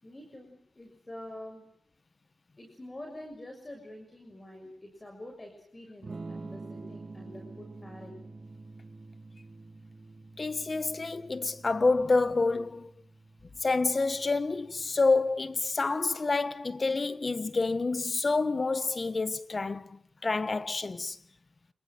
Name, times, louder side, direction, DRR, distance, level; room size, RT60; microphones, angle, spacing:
voice 1, 0.0-1.7 2.6-8.2, left 1 dB, 30° left, 6.8 m, -46 dB
Electric guitar / Strum, 6.0-15.8, right 3 dB, 45° right, 4.0 m, -47 dB
voice 2, 10.4-12.9 13.6-21.2, left 3 dB, 45° left, 1.4 m, -28 dB
29.5 x 21.0 x 7.8 m
cardioid pair, 55°, 0 cm